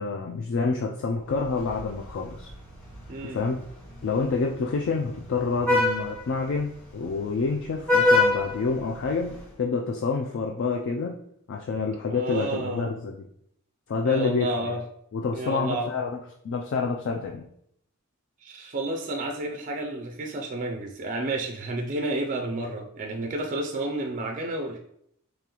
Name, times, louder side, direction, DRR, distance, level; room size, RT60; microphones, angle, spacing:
voice 1, 0.0-2.5 3.2-3.6 4.0-11.2 11.5-13.3 13.9-14.8 15.1-16.2 16.4-17.5, left 4 dB, 55° left, 2 dB, 0.3 m, -28 dB
Vehicle horn car horn honking, 1.3-9.5, left 2 dB, 5° left, 1.3 m, -28 dB
voice 2, 3.1-3.4 12.1-12.9 14.0-14.8 15.3-15.9 18.4-24.8, right 2 dB, 35° right, 2 dB, 0.4 m, -31 dB
3.8 x 3.3 x 2.9 m, 0.71 s
head